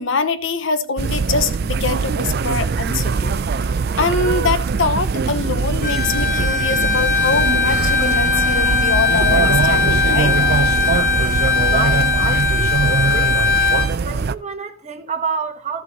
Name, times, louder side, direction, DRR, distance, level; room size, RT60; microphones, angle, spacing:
voice 1, 0.0-3.3 4.0-10.3, left 4 dB, 60° left, 0.8 m, -23 dB
sound 1, 1.0-14.3, right 4 dB, 50° right, 0.4 m, -21 dB
Bowed string instrument, 5.8-13.9, left 5 dB, 35° left, 3.8 m, -19 dB
Wind instrument woodwind instrument, 7.2-12.4, equal, 15° left, 3.1 m, -31 dB
voice 2, 11.7-13.4 14.0-15.8, right 5 dB, 30° right, 1.3 m, -28 dB
13.5 x 7.1 x 4.0 m
head